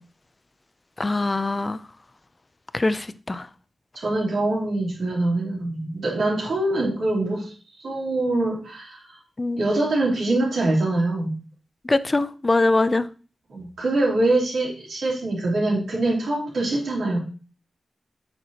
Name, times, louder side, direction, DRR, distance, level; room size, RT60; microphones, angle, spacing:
voice 1, 1.0-1.8 2.7-3.4 9.4-9.6 11.9-13.0, left 2 dB, 25° left, 0.4 m, -22 dB
voice 2, 4.0-7.5 7.8-9.2 9.6-11.3 13.5-17.2, right 2 dB, 80° right, 3.6 m, -24 dB
8.1 x 6.6 x 2.9 m
wide cardioid pair, 130°, 0 cm